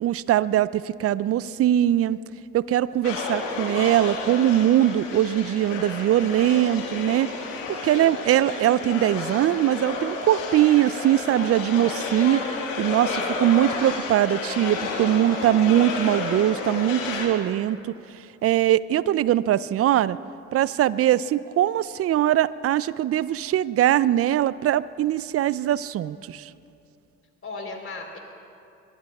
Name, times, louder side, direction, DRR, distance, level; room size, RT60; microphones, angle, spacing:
voice 1, 0.0-2.2 2.5-7.3 7.7-12.4 12.8-13.1 13.4-17.8 18.4-20.2 20.5-26.5, right 12 dB, 40° right, 19 dB, 0.5 m, -21 dB
sound 1, 3.0-17.3, left 4 dB, 85° left, 1.7 m, -31 dB
voice 2, 7.8-8.4 12.9-13.5 27.4-28.2, left 3 dB, 35° left, 2 dB, 3.7 m, -37 dB
24.0 x 22.5 x 2.4 m, 2.6 s
hypercardioid pair, 55°, 37 cm